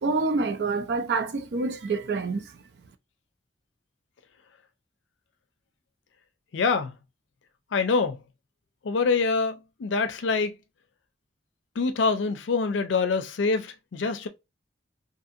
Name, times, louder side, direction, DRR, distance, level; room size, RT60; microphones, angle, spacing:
voice 1, 0.0-2.4, right 3 dB, 60° right, 0.4 m, -27 dB
voice 2, 6.5-6.9 7.7-8.2 8.8-10.5 11.8-14.3, left 4 dB, 90° left, 0.5 m, -25 dB
2.7 x 2.6 x 2.5 m
head